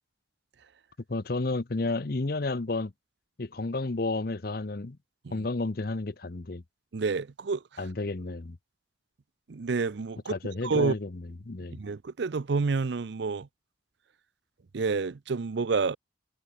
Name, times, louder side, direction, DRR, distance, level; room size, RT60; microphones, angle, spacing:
voice 1, 1.1-2.9 3.4-5.0 5.3-6.6 7.8-8.6 10.3-11.8, left 2 dB, 50° left, 0.8 m, -31 dB
voice 2, 6.9-7.6 9.5-10.3 10.6-10.9 11.7-13.5 14.7-16.0, right 4 dB, 65° right, 0.5 m, -28 dB
head